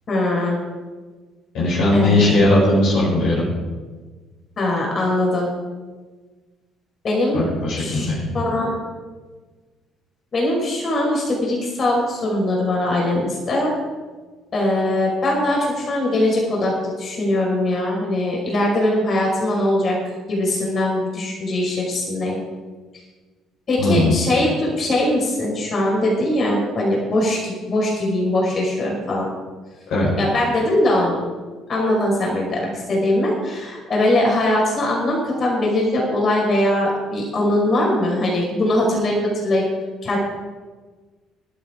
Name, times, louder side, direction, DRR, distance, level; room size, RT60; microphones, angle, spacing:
voice 1, 0.1-0.6 1.9-2.2 4.6-5.5 7.0-7.5 7.8-8.8 10.3-13.8 14.5-20.0 20.3-22.4 23.7-29.3 30.2-31.2 31.7-39.2 39.4-39.6 40.0-40.2, left 1 dB, 40° left, -2 dB, 5.2 m, -21 dB
voice 2, 1.5-3.4 7.3-8.3 23.8-24.2 29.9-30.1, left 2 dB, 55° left, -5 dB, 4.9 m, -18 dB
19.5 x 12.5 x 3.8 m, 1.3 s
figure-of-eight pair, 50°, 0 cm